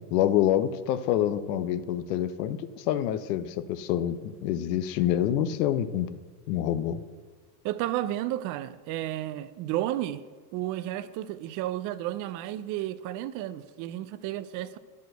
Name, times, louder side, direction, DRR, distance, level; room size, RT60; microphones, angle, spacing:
voice 1, 0.0-6.1 6.5-7.0, left 11 dB, 70° left, 0.8 m, -27 dB
voice 2, 7.6-10.2 10.5-14.8, right 13 dB, 40° right, 0.5 m, -32 dB
10.0 x 5.3 x 7.7 m
supercardioid pair, 125°, 49 cm